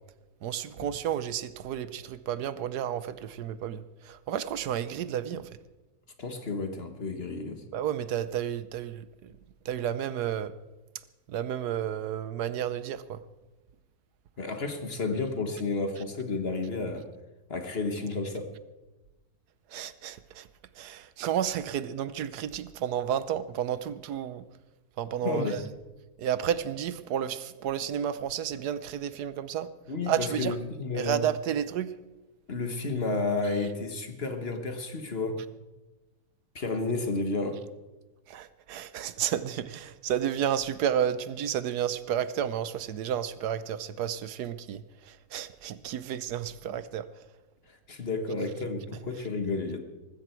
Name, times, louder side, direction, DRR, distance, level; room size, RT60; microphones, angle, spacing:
voice 1, 0.4-5.5 7.7-9.1 9.7-10.5 11.3-13.2 19.7-20.5 20.8-24.4 25.0-25.6 26.2-29.7 30.1-30.5 30.9-31.9 38.3-47.0, right 9 dB, 80° right, 15 dB, 1.3 m, -31 dB
voice 2, 6.2-7.7 14.4-17.1 17.5-18.5 25.2-25.7 29.9-31.2 32.5-35.5 36.5-37.6 47.6-49.8, left 3 dB, 40° left, 6 dB, 1.6 m, -31 dB
19.5 x 15.0 x 4.5 m, 1.1 s
omnidirectional pair, 1.7 m